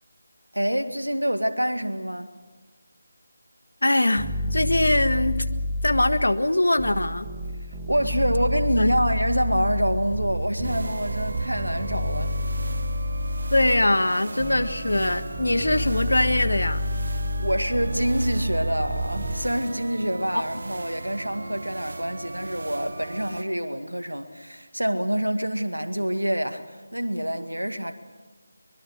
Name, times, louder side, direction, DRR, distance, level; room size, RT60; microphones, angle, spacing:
voice 1, 0.5-2.3 7.9-12.3 17.4-27.9, equal, 85° right, 2.1 m, -26 dB
voice 2, 3.8-5.4 5.8-7.3 8.8-8.9 13.5-16.8 20.3-20.4, left 1 dB, 70° left, 1.5 m, -22 dB
sound 1, 4.2-6.3 6.8-13.9 14.4-19.4, left 1 dB, 20° right, 1.9 m, -29 dB
sound 2, 10.6-23.4, right 2 dB, 55° right, 0.8 m, -38 dB
24.0 x 21.5 x 6.6 m
figure-of-eight pair, 160°, 0 cm